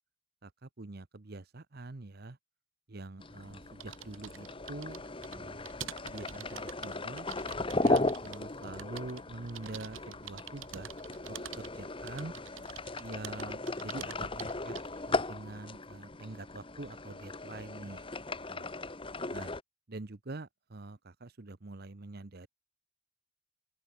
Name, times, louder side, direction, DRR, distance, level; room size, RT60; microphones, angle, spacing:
voice 1, 0.4-2.4 2.9-5.0 5.3-5.8 6.0-7.3 7.8-12.3 13.0-14.7 15.1-18.1 18.5-18.7 19.3-19.5 19.9-22.5, right 2 dB, 45° right, 0.8 m, -45 dB
sound 1, 3.2-19.6, left 2 dB, 25° left, 1.2 m, -37 dB
sound 2, 3.5-15.1, right 8 dB, 65° right, 1.7 m, -48 dB
open air
head